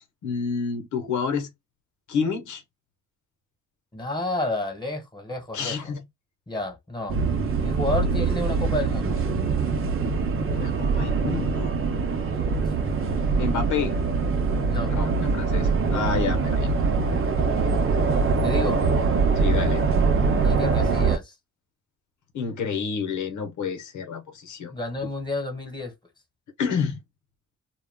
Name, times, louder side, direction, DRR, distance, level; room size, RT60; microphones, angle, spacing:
voice 1, 0.0-1.5 2.1-2.6 5.5-6.0 10.5-11.7 13.4-14.0 14.9-16.7 19.4-19.8 22.3-24.7 26.6-27.0, left 6 dB, 75° left, 0.8 m, -29 dB
voice 2, 3.9-5.9 6.5-7.2 7.6-9.2 14.7-14.9 18.4-18.8 20.4-21.3 24.7-25.9, left 2 dB, 15° left, 1.3 m, -30 dB
sound 1, 7.1-21.2, right 4 dB, 45° right, 0.8 m, -23 dB
2.3 x 2.1 x 3.5 m
cardioid pair, 80°, 30 cm